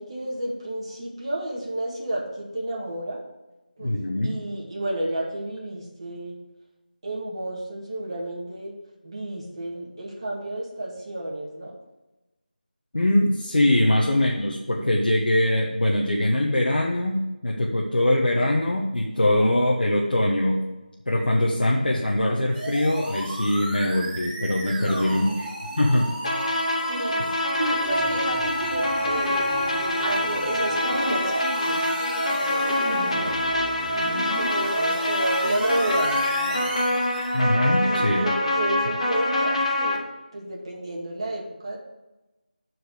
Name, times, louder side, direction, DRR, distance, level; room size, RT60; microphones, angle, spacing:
voice 1, 0.0-3.2 3.8-3.9 4.2-6.4 7.0-8.7 9.0-11.8 13.8-14.0 24.8-25.3 26.8-27.3 27.5-29.5 30.0-33.7 34.4-36.9 37.8-40.0 40.3-41.8, right 1 dB, 35° right, -3 dB, 1.9 m, -31 dB
voice 2, 3.8-4.4 12.9-20.6 21.1-25.5 25.8-26.1 37.3-38.3, left 1 dB, 75° left, -2 dB, 1.2 m, -22 dB
sound 1, 22.5-37.4, right 1 dB, 5° right, 0.6 m, -34 dB
sound 2, 26.2-40.0, left 1 dB, 40° left, 1.2 m, -25 dB
8.3 x 4.7 x 6.6 m, 1.1 s
figure-of-eight pair, 175°, 5 cm